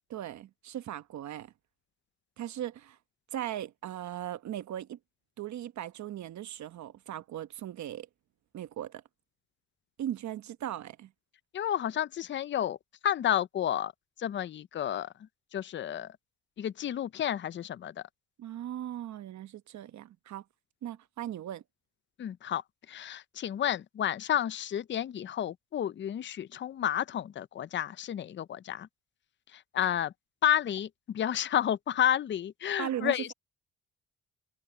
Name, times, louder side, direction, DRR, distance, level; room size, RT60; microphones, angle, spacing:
voice 1, 0.1-1.5 2.4-3.0 3.3-5.0 5.4-8.1 8.5-9.0 10.0-11.1 18.4-20.4 20.8-21.6 32.8-33.3, right 11 dB, 65° right, 1.1 m, -38 dB
voice 2, 11.5-12.8 13.0-13.9 14.2-15.1 15.5-16.1 16.6-17.9 22.2-22.6 22.9-28.9 29.5-30.1 30.4-33.3, left 10 dB, 40° left, 0.5 m, -31 dB
cardioid pair, 90°, 30 cm